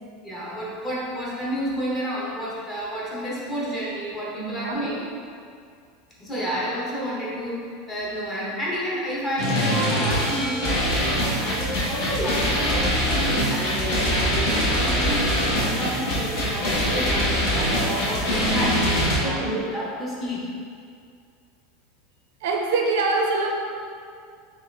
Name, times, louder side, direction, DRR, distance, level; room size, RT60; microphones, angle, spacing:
voice 1, 0.2-5.0 6.2-11.1 11.4-20.4, equal, 10° left, -7 dB, 0.8 m, -30 dB
voice 2, 4.3-5.1 17.8-17.9 19.2-19.6 22.4-23.6, right 3 dB, 65° right, 1 dB, 0.5 m, -25 dB
sound 1, 9.4-19.2, equal, 50° left, 1.2 m, -23 dB
5.5 x 2.4 x 3.3 m, 2.3 s
supercardioid pair, 175°, 0 cm